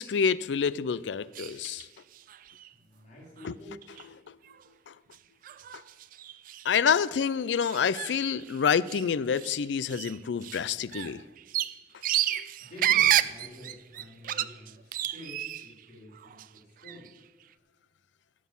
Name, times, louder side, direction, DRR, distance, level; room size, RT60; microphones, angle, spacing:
voice 1, 0.0-1.9 3.4-3.5 4.9-5.0 6.6-11.2 12.2-12.4, left 6 dB, 90° left, 0.4 m, -27 dB
sound 1, 1.3-1.9 2.1-2.7 3.4-3.5 3.8-4.0 4.5-4.6 5.1-5.2 5.4-6.7 7.6-9.1 9.4-9.6 9.9-15.8 16.1-17.1, right 12 dB, 50° right, 0.3 m, -31 dB
voice 2, 2.7-3.8 12.6-17.1, left 1 dB, 45° left, 3.8 m, -48 dB
11.0 x 6.3 x 7.1 m
head